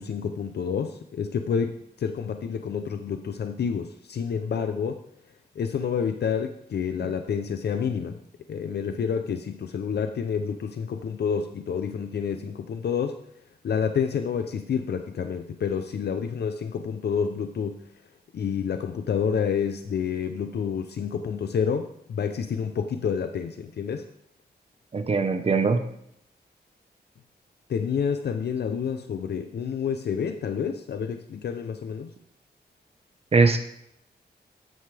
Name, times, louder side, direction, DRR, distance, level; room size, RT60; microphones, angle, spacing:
voice 1, 0.0-5.0 5.6-8.2 8.5-13.2 13.6-17.8 18.3-24.1 27.7-32.1, left 7 dB, 70° left, 7 dB, 0.6 m, -29 dB
voice 2, 24.9-25.8 33.3-33.6, right 4 dB, 35° right, 7 dB, 1.1 m, -21 dB
13.5 x 9.5 x 3.4 m, 0.75 s
wide cardioid pair, 165°, 18 cm